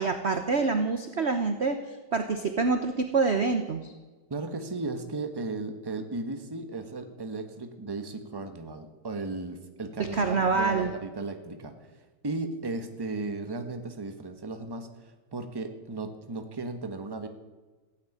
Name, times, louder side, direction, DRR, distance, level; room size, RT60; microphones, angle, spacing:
voice 1, 0.0-1.8 2.1-3.9 10.1-10.9, right 4 dB, 45° right, 7 dB, 0.9 m, -26 dB
voice 2, 4.3-17.3, right 3 dB, 15° right, 7 dB, 1.0 m, -36 dB
15.5 x 9.1 x 9.8 m, 1.2 s
omnidirectional pair, 2.3 m